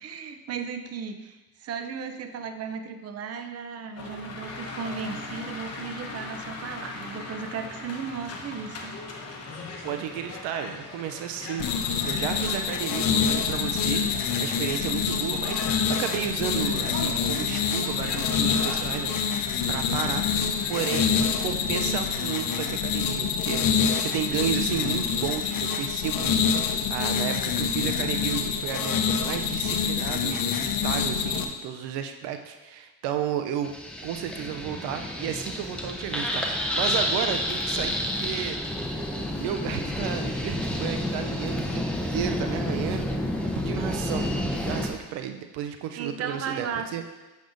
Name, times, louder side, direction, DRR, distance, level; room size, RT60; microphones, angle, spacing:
voice 1, 0.0-9.0 46.0-46.9, right 6 dB, 40° right, 7 dB, 0.5 m, -35 dB
sound 1, 4.0-22.7, left 3 dB, 40° left, 1.0 m, -41 dB
voice 2, 9.8-11.7 12.0-19.2 19.7-20.3 20.7-21.1 21.4-33.8 34.0-38.6 39.4-43.1 43.6-47.0, right 9 dB, 90° right, 7 dB, 0.6 m, -33 dB
sound 2, 11.6-31.4, left 6 dB, 55° left, 0.7 m, -26 dB
sound 3, 33.6-44.9, left 1 dB, 5° left, 0.7 m, -29 dB
7.5 x 5.3 x 2.6 m, 1.2 s
cardioid pair, 85°, 41 cm